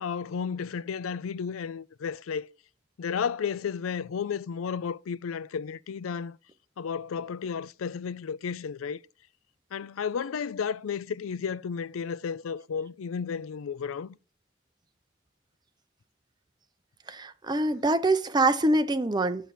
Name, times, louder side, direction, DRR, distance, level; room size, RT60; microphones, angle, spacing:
voice 1, 0.0-2.5 3.0-6.4 6.8-9.0 9.7-14.2, left 6 dB, 90° left, 0.4 m, -33 dB
voice 2, 17.1-19.5, right 2 dB, 20° right, 0.6 m, -25 dB
9.1 x 6.9 x 4.2 m
head